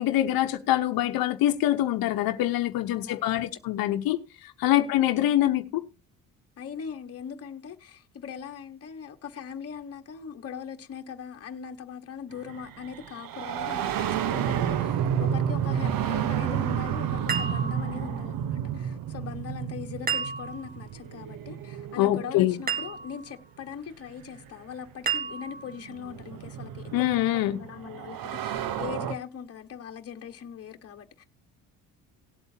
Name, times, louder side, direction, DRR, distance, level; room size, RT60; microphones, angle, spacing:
voice 1, 0.0-5.8 22.0-22.6 26.9-27.6, left 14 dB, 85° left, 1.0 m, -25 dB
voice 2, 2.9-3.4 4.7-4.9 6.6-31.2, left 7 dB, 45° left, 1.4 m, -40 dB
sound 1, 12.4-23.0 24.3-24.4 25.4-29.1, right 9 dB, 75° right, 1.0 m, -31 dB
sound 2, 17.3-18.2 20.1-20.8 22.7-23.4 25.1-25.8, right 6 dB, 25° right, 1.4 m, -32 dB
18.5 x 8.1 x 2.8 m
cardioid pair, 135°, 35 cm